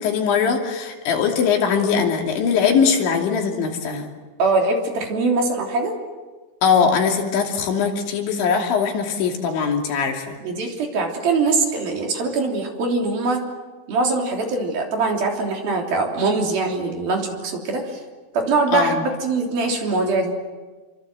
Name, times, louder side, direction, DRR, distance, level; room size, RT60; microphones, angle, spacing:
voice 1, 0.0-4.1 6.6-10.4 18.7-19.0, left 6 dB, 80° left, 2 dB, 5.2 m, -21 dB
voice 2, 4.4-6.0 10.4-13.4 13.9-18.0 18.3-20.3, right 3 dB, 55° right, 1 dB, 4.9 m, -22 dB
29.5 x 24.0 x 7.8 m, 1.3 s
omnidirectional pair, 5.2 m